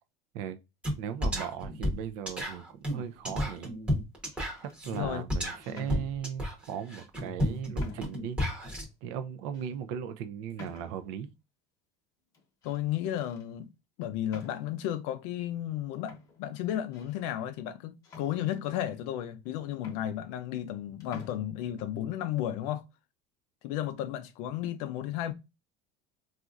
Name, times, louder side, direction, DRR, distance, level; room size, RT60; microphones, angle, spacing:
sound 1, 0.8-1.0 1.2-8.8, equal, 5° right, 0.8 m, -32 dB
voice 1, 1.0-3.8 4.8-8.4 9.0-11.3, right 8 dB, 55° right, 0.4 m, -37 dB
sound 2, 2.9-3.4 4.2-4.8 5.6-6.6 7.3-7.4 7.8-8.3 8.8-8.9 9.5-9.7 10.6-11.2 12.3-12.8 13.2-13.5 14.3-14.9 15.7-15.8 16.1-17.3 18.0-18.9 19.5-19.6 19.8-20.8 21.0-21.4, left 4 dB, 20° left, 0.9 m, -51 dB
voice 2, 4.9-5.2 12.6-13.7 14.0-22.8 23.6-25.3, left 11 dB, 65° left, 0.4 m, -33 dB
4.0 x 2.4 x 2.4 m
cardioid pair, 180°, 17 cm